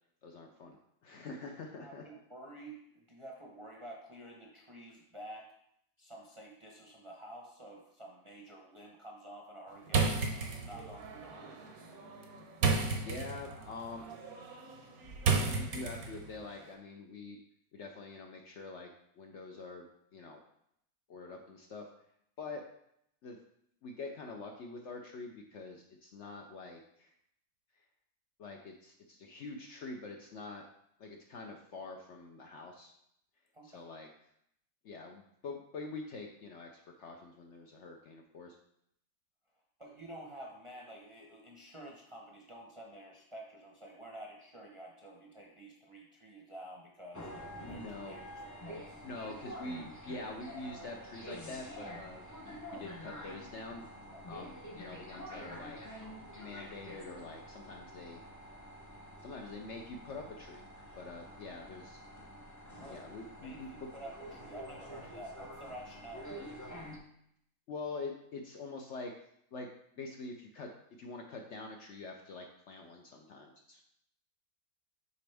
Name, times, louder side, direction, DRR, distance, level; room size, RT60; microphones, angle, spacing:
voice 1, 0.2-0.8 1.0-2.1 12.1-12.4 12.9-14.1 15.4-17.4 17.7-18.9 19.2-19.9 20.1-20.4 21.1-21.8 22.4-22.6 23.2-23.4 23.8-27.1 28.4-30.6 31.0-32.9 33.6-34.1 34.8-38.6 47.6-48.2 49.0-53.9 54.3-56.0 56.4-58.2 59.2-60.6 61.0-62.0 62.9-63.9 67.7-69.1 69.5-69.7 70.0-70.7 71.0-73.8, left 3 dB, 60° left, 2 dB, 0.8 m, -45 dB
voice 2, 1.8-5.5 6.0-10.2 10.6-11.6 33.5-33.8 39.8-47.3 47.6-49.0 54.1-54.3 62.7-63.1 63.4-66.3, right 1 dB, 25° right, -2 dB, 0.7 m, -50 dB
sound 1, 9.9-16.4, right 4 dB, 70° right, 1.3 m, -34 dB
sound 2, 47.1-67.0, equal, 20° left, 0.4 m, -48 dB
6.8 x 5.1 x 3.4 m, 0.74 s
omnidirectional pair, 1.6 m